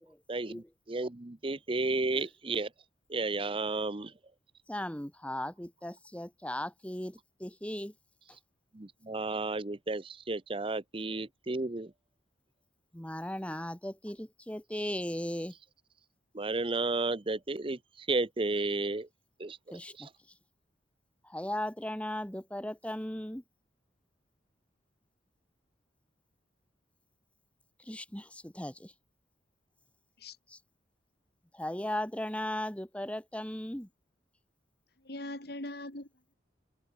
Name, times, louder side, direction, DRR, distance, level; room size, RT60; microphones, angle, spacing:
voice 1, 0.3-2.7 3.1-4.1 8.7-11.9 16.3-19.1 19.4-19.6 20.0-20.1, right 3 dB, 30° right, 0.8 m, -32 dB
voice 2, 4.7-7.9 12.9-15.5 19.7-20.1 21.2-23.4 27.9-28.9 31.5-33.9, left 1 dB, 5° left, 1.6 m, -37 dB
voice 3, 35.0-36.4, left 1 dB, 60° left, 4.2 m, -41 dB
head